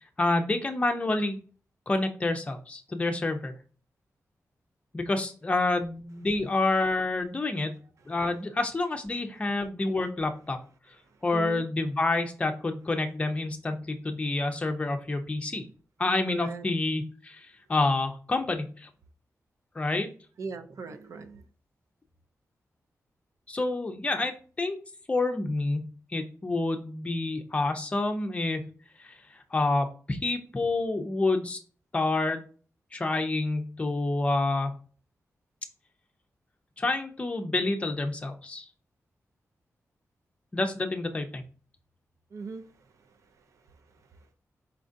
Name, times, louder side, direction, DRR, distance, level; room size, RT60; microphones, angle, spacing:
voice 1, 0.2-1.4 1.9-3.5 4.9-7.8 8.1-10.6 11.2-15.6 16.0-18.9 19.8-20.1 23.5-24.3 24.6-24.8 25.1-25.9 26.1-28.6 29.0-29.1 29.5-31.6 31.9-32.4 32.9-34.7 36.8-38.7 40.5-41.4, left 2 dB, 20° left, 0.6 m, -28 dB
voice 2, 11.0-11.6 16.3-16.7 20.4-21.4 42.3-44.3, right 4 dB, 65° right, 0.5 m, -42 dB
4.4 x 3.7 x 2.6 m
wide cardioid pair, 165°, 6 cm